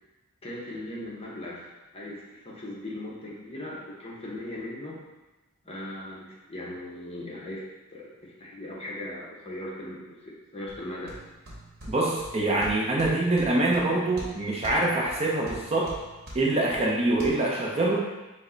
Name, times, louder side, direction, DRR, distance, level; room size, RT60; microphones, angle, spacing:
voice 1, 0.4-5.0 5.6-7.6 7.9-11.1, left 1 dB, 25° left, -5 dB, 0.8 m, -39 dB
sound 1, 10.7-17.3, equal, 45° right, 1.0 m, -44 dB
voice 2, 11.9-15.9 16.3-18.0, right 2 dB, 30° right, -3 dB, 0.5 m, -25 dB
5.1 x 2.1 x 3.8 m, 1.1 s
head